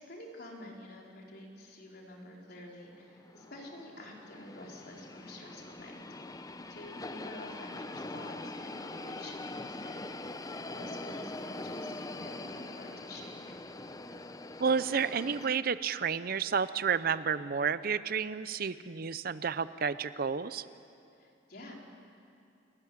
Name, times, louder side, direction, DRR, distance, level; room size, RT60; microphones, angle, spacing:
voice 1, 0.0-6.0 6.7-10.0 10.7-13.4 21.2-21.8, left 1 dB, 55° left, -1 dB, 4.1 m, -48 dB
sound 1, 2.8-15.5, left 2 dB, 20° left, 0.7 m, -43 dB
voice 2, 14.6-20.6, right 6 dB, 50° right, 15 dB, 0.6 m, -31 dB
29.5 x 14.5 x 9.7 m, 2.6 s
head